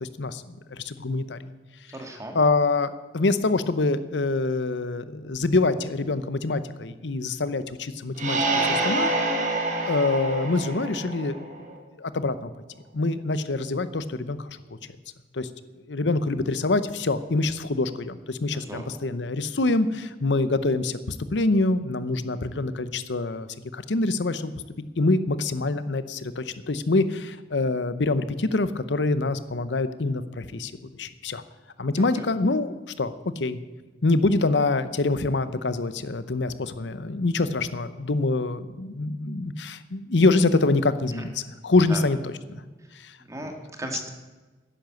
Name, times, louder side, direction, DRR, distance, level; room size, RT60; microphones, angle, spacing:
voice 1, 0.0-1.4 2.3-9.1 9.8-11.5 12.0-12.5 12.9-14.6 15.3-15.5 15.9-23.5 23.7-24.5 25.0-30.7 31.0-31.4 31.8-33.6 34.0-42.6 43.0-43.2, left 3 dB, 90° left, 14 dB, 0.8 m, -25 dB
voice 2, 1.9-2.4 18.5-19.1 32.2-32.3 41.9-42.0 43.3-44.1, right 1 dB, 20° right, 4 dB, 1.9 m, -36 dB
sound 1, 8.2-11.8, right 2 dB, 45° right, 2.1 m, -27 dB
10.5 x 10.0 x 7.8 m, 1.3 s
head